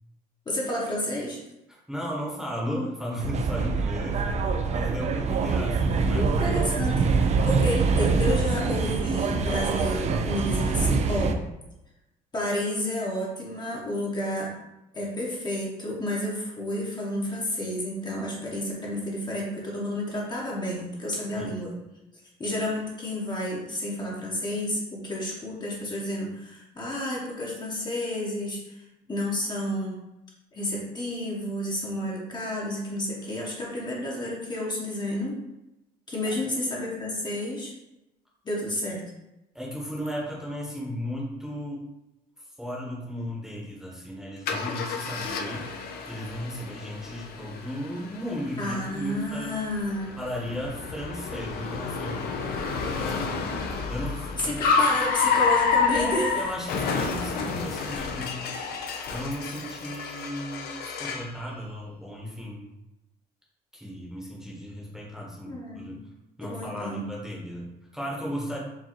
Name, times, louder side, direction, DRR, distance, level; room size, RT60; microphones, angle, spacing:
voice 1, 0.5-1.4 6.1-11.4 12.3-14.5 14.9-21.7 22.4-28.8 29.1-30.0 30.5-35.4 36.1-37.7 38.4-39.0 48.6-50.1 54.4-56.3 65.5-65.9 66.4-67.0, left 1 dB, 25° left, -4 dB, 1.0 m, -30 dB
voice 2, 1.7-4.2 4.7-6.5 21.4-21.6 36.2-36.4 39.5-41.8 42.6-45.7 46.0-49.5 50.2-52.3 52.9-54.6 55.9-58.6 59.1-62.7 63.7-66.1 66.4-68.6, equal, 5° right, -4 dB, 1.0 m, -35 dB
sound 1, 3.2-11.3, right 4 dB, 40° right, 0.4 m, -24 dB
Car, 44.5-61.3, left 5 dB, 65° left, 0.5 m, -30 dB
4.7 x 2.6 x 3.0 m, 0.93 s
cardioid pair, 110°, 17 cm